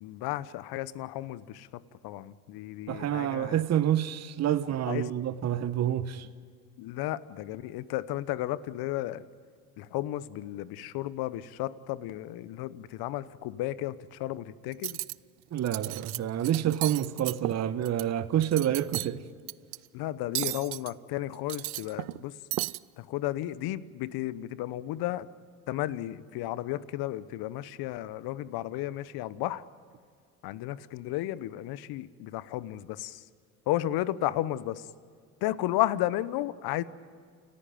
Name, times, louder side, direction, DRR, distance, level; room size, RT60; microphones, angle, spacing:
voice 1, 0.0-3.6 4.9-5.1 6.8-9.2 9.8-15.0 19.9-22.3 23.0-25.3 25.7-29.6 30.4-33.2 33.7-34.8 35.4-36.8, left 15 dB, 60° left, 1.1 m, -33 dB
voice 2, 2.9-6.3 15.5-19.2, right 11 dB, 40° right, 1.0 m, -28 dB
Cutlery silverware, 14.7-15.1 15.6-16.2 16.4-18.0 18.4-19.1 19.5-19.8 20.3-20.9 21.3-22.2 22.5-22.8, right 22 dB, 80° right, 0.5 m, -34 dB
29.5 x 14.5 x 9.3 m
hypercardioid pair, 75°, 43 cm